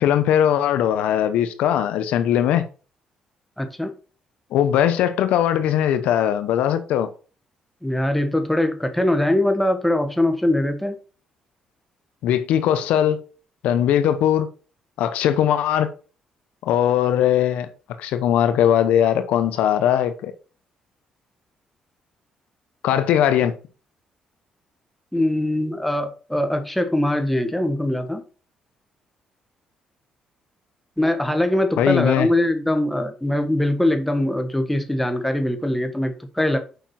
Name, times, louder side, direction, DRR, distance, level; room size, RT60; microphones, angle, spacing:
voice 1, 0.0-2.7 4.5-7.1 12.2-13.2 13.6-14.5 15.0-15.9 16.6-17.7 18.0-20.3 22.8-23.5 31.8-32.3, left 10 dB, 85° left, 0.9 m, -20 dB
voice 2, 3.6-3.9 7.8-11.0 25.1-28.2 31.0-36.6, left 1 dB, 5° left, 1.6 m, -22 dB
7.0 x 5.2 x 5.8 m
cardioid pair, 85°, 2 cm